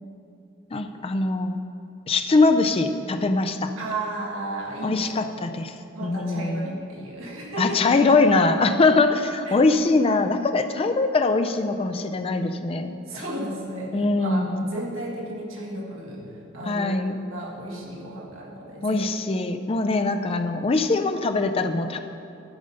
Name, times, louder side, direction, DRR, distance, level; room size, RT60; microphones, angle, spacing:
voice 1, 0.7-1.6 2.1-3.7 4.8-5.7 6.0-6.8 7.6-13.0 13.9-14.6 16.7-17.2 18.8-22.0, left 3 dB, 25° left, 8 dB, 0.4 m, -22 dB
voice 2, 3.8-5.3 5.9-7.8 9.5-9.6 13.1-17.0 17.3-19.1, right 1 dB, 75° right, -3 dB, 1.8 m, -34 dB
12.0 x 5.3 x 5.4 m, 2.7 s
head